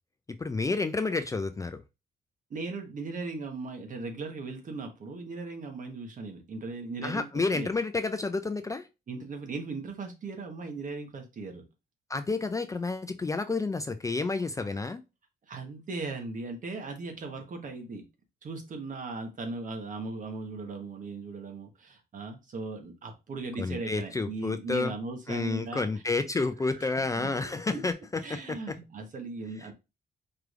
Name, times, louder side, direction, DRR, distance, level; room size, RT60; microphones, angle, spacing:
voice 1, 0.4-1.8 7.0-8.9 12.1-15.0 23.6-24.9 25.3-28.6, left 3 dB, 20° left, 9 dB, 0.3 m, -30 dB
voice 2, 2.5-7.3 7.5-7.7 9.1-11.6 15.5-18.0 18.4-25.9 26.7-27.3 27.7-27.8 28.2-29.7, right 3 dB, 50° right, 5 dB, 1.2 m, -38 dB
4.7 x 3.2 x 2.5 m, 0.26 s
cardioid pair, 95°, 17 cm